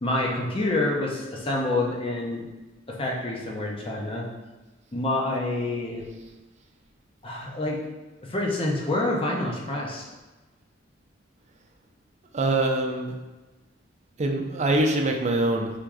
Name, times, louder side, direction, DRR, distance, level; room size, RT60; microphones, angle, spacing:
voice 1, 0.0-2.5 2.9-4.3 4.9-6.0 7.2-7.8 8.2-10.1, left 2 dB, 30° left, -2 dB, 0.6 m, -27 dB
voice 2, 12.3-13.1 14.2-15.7, right 2 dB, 35° right, 2 dB, 0.5 m, -24 dB
3.6 x 2.6 x 4.6 m, 1.2 s
head